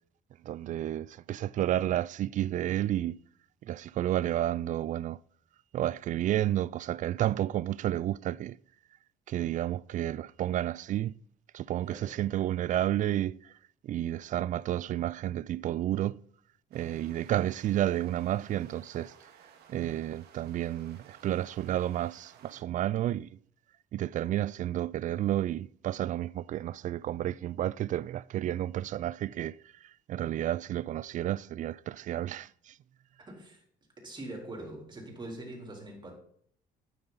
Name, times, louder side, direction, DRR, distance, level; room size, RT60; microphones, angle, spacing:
voice 1, 0.4-3.2 3.6-5.2 5.7-8.6 9.3-11.1 11.5-13.4 13.8-16.2 16.7-19.1 19.7-23.3 23.9-29.6 30.1-32.7, right 12 dB, 50° right, 0.4 m, -31 dB
voice 2, 11.9-12.2 33.3-33.6 34.0-36.1, right 1 dB, 25° right, 3.9 m, -43 dB
sound 1, 16.7-22.6, right 8 dB, 75° right, 2.0 m, -57 dB
12.5 x 9.3 x 4.0 m
cardioid pair, 110°, 17 cm